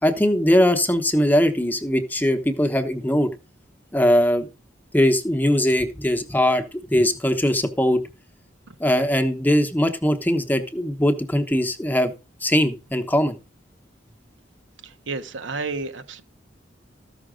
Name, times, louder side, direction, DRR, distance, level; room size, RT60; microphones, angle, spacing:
voice 1, 0.0-3.3 3.9-4.5 4.9-8.0 8.8-12.1 12.4-13.4, equal, 10° left, 1.0 m, -20 dB
voice 2, 14.8-16.2, right 3 dB, 75° right, 1.1 m, -31 dB
14.0 x 5.9 x 5.1 m
head